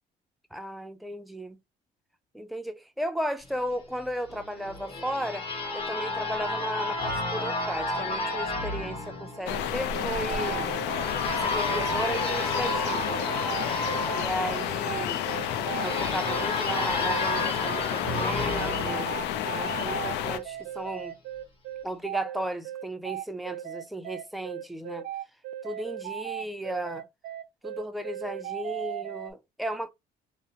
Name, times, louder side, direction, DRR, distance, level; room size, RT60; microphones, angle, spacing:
voice 1, 0.5-1.6 2.3-10.7 11.4-13.2 14.1-15.2 15.8-19.1 19.5-21.2 21.8-25.0 25.6-27.1 27.6-29.9, equal, ahead, 0.4 m, -35 dB
sound 1, 4.3-20.0, left 2 dB, 35° left, 1.0 m, -32 dB
sound 2, 9.5-20.4, left 10 dB, 85° left, 0.4 m, -31 dB
sound 3, 9.9-29.3, right 12 dB, 65° right, 0.4 m, -37 dB
2.6 x 2.0 x 2.7 m
cardioid pair, 110°, 17 cm